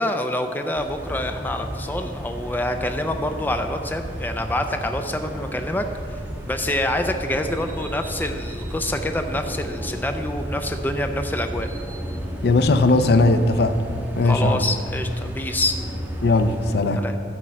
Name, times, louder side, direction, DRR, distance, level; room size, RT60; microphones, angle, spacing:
voice 1, 0.0-5.9 6.4-11.7 14.2-15.8 16.9-17.2, left 1 dB, 10° left, 6 dB, 0.4 m, -26 dB
sound 1, 0.8-16.8, equal, 10° right, 1.1 m, -33 dB
voice 2, 12.4-13.8 14.1-14.6 16.2-17.0, left 2 dB, 60° left, 9 dB, 0.5 m, -18 dB
12.5 x 4.5 x 7.4 m, 2.4 s
head